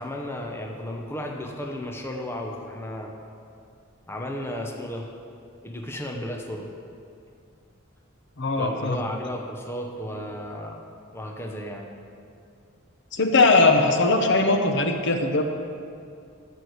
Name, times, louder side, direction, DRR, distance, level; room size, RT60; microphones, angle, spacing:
voice 1, 0.0-3.1 4.1-5.1 5.6-6.7 8.6-10.9 11.1-11.9, left 1 dB, 10° left, 2 dB, 0.7 m, -34 dB
voice 2, 8.4-9.0 13.1-15.4, left 3 dB, 55° left, 5 dB, 0.8 m, -20 dB
12.5 x 4.7 x 8.1 m, 2.4 s
head